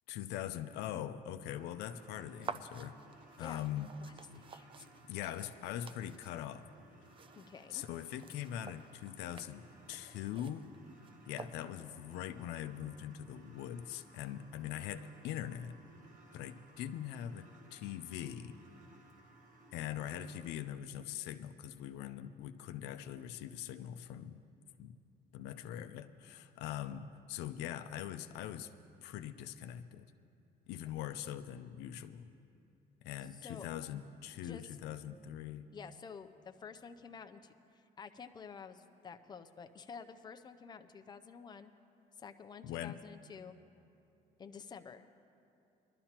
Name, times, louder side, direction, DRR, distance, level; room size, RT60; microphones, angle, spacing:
voice 1, 0.1-3.0 3.4-3.9 5.1-6.7 7.7-10.7 11.3-15.8 16.3-18.6 19.7-24.4 24.8-24.9 25.3-28.7 29.0-30.1 30.7-32.2 33.0-35.7 42.6-43.0, left 11 dB, 90° left, 9 dB, 0.5 m, -42 dB
sound 1, 1.5-20.5, right 2 dB, 50° right, 1.4 m, -61 dB
sound 2, 2.4-12.0, right 6 dB, 30° right, 0.4 m, -51 dB
voice 2, 4.0-4.9 7.4-7.8 33.3-33.7 34.4-34.8 35.7-41.7 42.2-43.5 44.4-45.1, left 6 dB, 25° left, 7 dB, 0.5 m, -50 dB
20.5 x 12.0 x 2.9 m, 2.7 s
cardioid pair, 110°, 17 cm